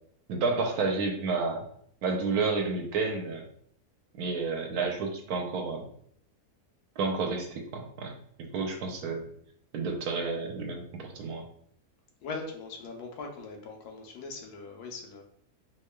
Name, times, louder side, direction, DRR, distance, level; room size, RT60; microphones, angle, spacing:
voice 1, 0.3-1.6 2.0-3.5 4.2-5.8 7.0-8.1 8.4-9.2 9.7-11.5, right 4 dB, 80° right, 3 dB, 1.2 m, -30 dB
voice 2, 12.2-15.2, left 3 dB, 90° left, 2 dB, 1.2 m, -40 dB
4.1 x 3.1 x 2.2 m, 0.65 s
omnidirectional pair, 1.6 m